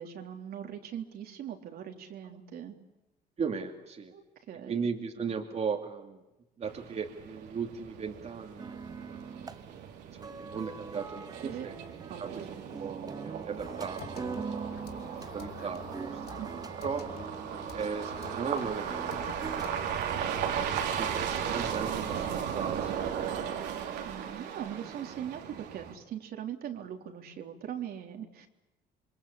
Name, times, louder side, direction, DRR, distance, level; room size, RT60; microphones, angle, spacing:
voice 1, 0.0-2.8 4.1-4.2 4.5-4.9 11.4-11.7 12.1-12.6 16.4-16.5 24.0-28.5, right 9 dB, 65° right, 4 dB, 3.6 m, -41 dB
voice 2, 3.4-4.1 4.7-6.2 6.6-8.8 9.0-9.5 10.1-11.7 12.2-14.7 15.0-16.5 16.8-17.1 17.7-20.0 20.7-22.9 23.2-23.6, right 6 dB, 40° right, 3 dB, 2.7 m, -37 dB
sound 1, 6.6-26.0, right 8 dB, 85° right, 3.8 m, -36 dB
sound 2, 8.6-19.7, right 4 dB, 20° right, 1.3 m, -43 dB
sound 3, 13.6-19.7, left 7 dB, 70° left, 3.1 m, -49 dB
28.5 x 23.5 x 8.6 m, 0.99 s
cardioid pair, 110°, 17 cm